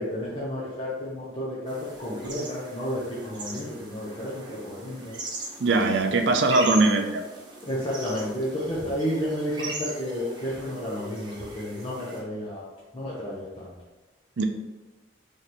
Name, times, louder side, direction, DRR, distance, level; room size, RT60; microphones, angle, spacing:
voice 1, 0.0-5.1 7.7-12.6 12.9-13.7, equal, 30° left, -7 dB, 0.7 m, -31 dB
sound 1, 1.7-12.2, right 2 dB, 25° right, 0.8 m, -39 dB
voice 2, 5.6-7.2 14.4-14.5, right 3 dB, 70° right, 5 dB, 0.5 m, -21 dB
3.3 x 3.0 x 4.1 m, 1.1 s
head